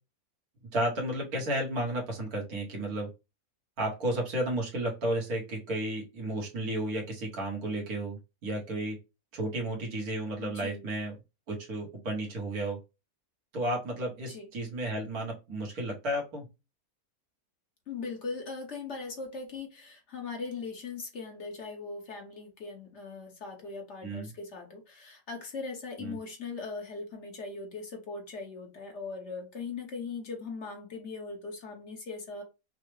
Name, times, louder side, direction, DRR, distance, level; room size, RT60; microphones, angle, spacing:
voice 1, 0.7-3.1 3.8-9.0 9.3-11.1 11.5-12.8 13.5-16.4 24.0-24.3 26.0-26.2, right 1 dB, 85° right, -1 dB, 1.8 m, -32 dB
voice 2, 10.4-10.9 14.3-14.5 17.9-32.4, left 4 dB, 55° left, 2 dB, 1.2 m, -40 dB
5.5 x 2.1 x 3.2 m, 0.27 s
omnidirectional pair, 1.5 m